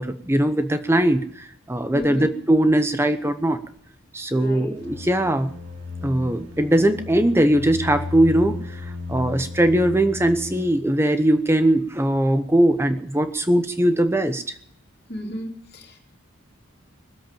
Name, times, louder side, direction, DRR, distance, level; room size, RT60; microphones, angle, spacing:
voice 1, 0.0-3.6 4.1-5.5 6.0-14.5, right 1 dB, 10° right, 9 dB, 0.9 m, -20 dB
voice 2, 1.9-2.3 4.3-4.7 15.1-16.0, equal, 45° left, 0 dB, 3.1 m, -34 dB
sound 1, 4.8-10.7, left 3 dB, 55° right, 3.1 m, -34 dB
20.0 x 8.0 x 9.0 m, 0.69 s
head